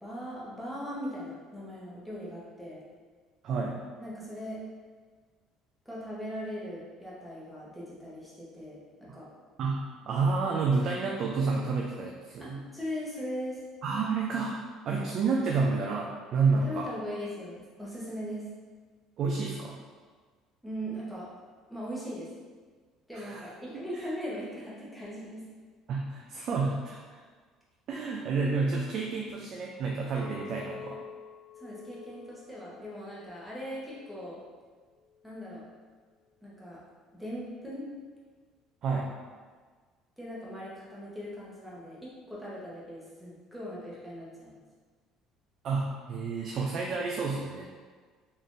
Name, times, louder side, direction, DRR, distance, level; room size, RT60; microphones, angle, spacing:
voice 1, 0.0-2.8 4.0-4.6 5.9-9.3 12.4-13.6 16.6-18.5 20.6-21.3 21.7-22.3 23.1-25.4 31.6-34.4 35.2-35.6 36.4-36.8 37.1-37.8 40.2-44.6, equal, ahead, -7 dB, 0.8 m, -39 dB
voice 2, 3.4-3.8 9.6-12.6 13.8-14.5 14.8-16.9 19.2-19.8 23.1-23.4 23.9-24.1 25.9-27.2 27.9-31.0 38.8-39.1 45.6-47.7, right 4 dB, 45° right, -1 dB, 0.3 m, -30 dB
Chink clink, 30.2-34.5 35.0-35.3, left 7 dB, 35° left, 0.5 m, -48 dB
3.6 x 2.5 x 2.5 m, 1.5 s
cardioid pair, 145°, 0 cm